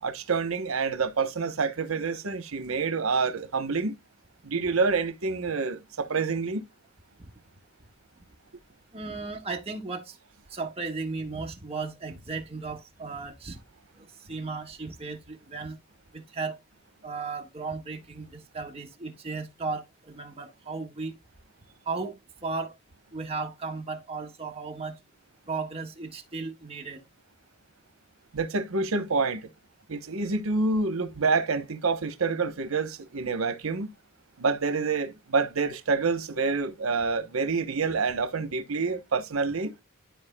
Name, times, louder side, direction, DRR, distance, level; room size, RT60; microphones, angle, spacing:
voice 1, 0.0-4.0 4.4-6.6 28.3-29.5 29.9-33.9 34.4-39.7, right 4 dB, 85° right, 1.0 m, -27 dB
voice 2, 8.9-10.1 10.5-13.6 14.0-15.8 16.1-16.6 17.0-21.1 21.8-22.1 22.4-22.7 23.1-25.0 25.5-27.0, right 4 dB, 30° right, 1.6 m, -35 dB
13.0 x 4.4 x 2.2 m
head